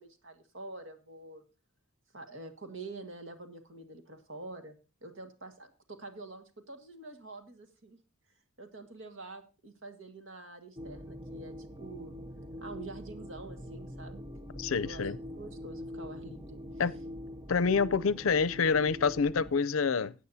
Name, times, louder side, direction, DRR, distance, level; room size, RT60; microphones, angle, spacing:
voice 1, 0.0-1.4 2.1-4.7 5.0-8.0 8.6-12.2 12.6-14.4 14.8-16.6, right 2 dB, 65° right, 1.8 m, -47 dB
sound 1, 10.8-19.5, left 1 dB, 20° right, 0.6 m, -44 dB
voice 2, 14.6-15.2 16.8-16.9 17.5-20.1, left 5 dB, 75° left, 0.5 m, -27 dB
17.0 x 8.6 x 2.7 m
head